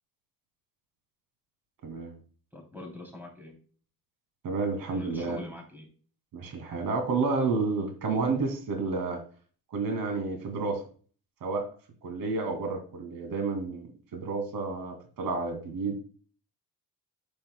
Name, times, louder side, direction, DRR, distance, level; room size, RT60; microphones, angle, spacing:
voice 1, 1.8-2.1 4.4-5.4 6.3-9.2 9.7-10.8 11.4-11.7 12.0-16.0, right 4 dB, 80° right, 4 dB, 2.3 m, -30 dB
voice 2, 2.5-3.6 4.9-5.9, left 2 dB, 5° right, 1 dB, 3.1 m, -43 dB
9.0 x 8.8 x 2.2 m, 0.41 s
cardioid pair, 135°, 34 cm